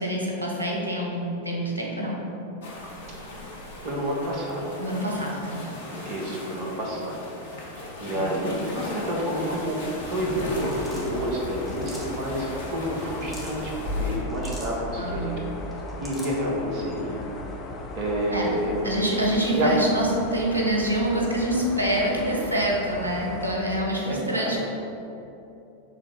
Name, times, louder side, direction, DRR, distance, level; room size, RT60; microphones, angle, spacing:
voice 1, 0.0-2.2 4.8-5.7 8.1-8.3 15.0-15.5 18.3-18.5 18.8-24.6, right 1 dB, 80° right, -2 dB, 1.2 m, -26 dB
sound 1, 2.6-14.2, left 1 dB, 65° left, 1.3 m, -39 dB
voice 2, 3.8-4.7 6.0-7.2 8.0-9.8 10.0-15.4 15.7-17.2 17.9-18.7 19.1-19.2 19.5-19.7 23.8-24.6, equal, 40° right, -2 dB, 1.6 m, -29 dB
sound 2, 10.0-23.6, left 2 dB, 30° left, 1.0 m, -36 dB
sound 3, 10.6-11.1 11.7-12.3 13.0-13.6 14.3-14.8 15.7-16.4, equal, 5° right, 1.5 m, -42 dB
7.4 x 3.7 x 5.4 m, 2.9 s
figure-of-eight pair, 90°, 0 cm